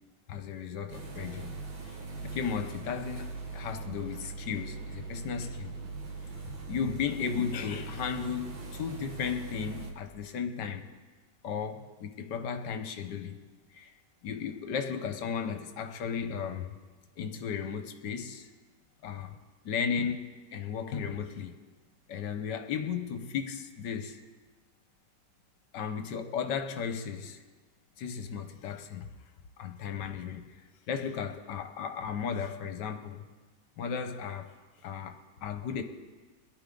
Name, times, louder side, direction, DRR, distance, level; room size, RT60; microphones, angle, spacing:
voice 1, 0.3-1.6 1.8-5.8 6.5-10.9 11.4-13.4 13.7-13.9 14.2-16.7 17.2-18.5 19.0-19.4 19.6-21.6 22.1-24.2 25.7-27.4 28.0-29.1 29.6-30.5 30.9-33.2 33.8-34.5 34.8-35.8, left 7 dB, 70° left, 1.5 m, -35 dB
sound 1, 0.9-9.9, right 4 dB, 90° right, 2.4 m, -41 dB
21.5 x 11.0 x 3.8 m
omnidirectional pair, 2.0 m